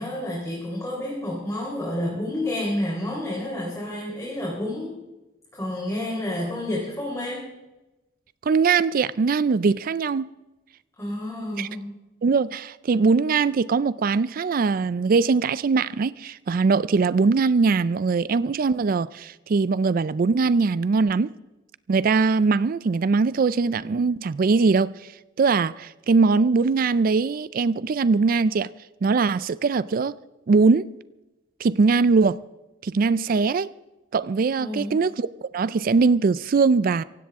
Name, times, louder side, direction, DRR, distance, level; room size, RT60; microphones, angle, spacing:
voice 1, 0.0-4.9 5.5-7.5 11.0-11.9 34.6-35.0, left 1 dB, 15° left, 3.9 m, -29 dB
voice 2, 8.5-10.3 11.6-11.7 12.2-21.3 21.9-25.1 25.4-28.7 29.0-30.1 30.5-30.9 31.6-32.4 32.8-33.7 34.1-37.0, right 4 dB, 50° right, 0.4 m, -21 dB
17.5 x 16.0 x 3.6 m
head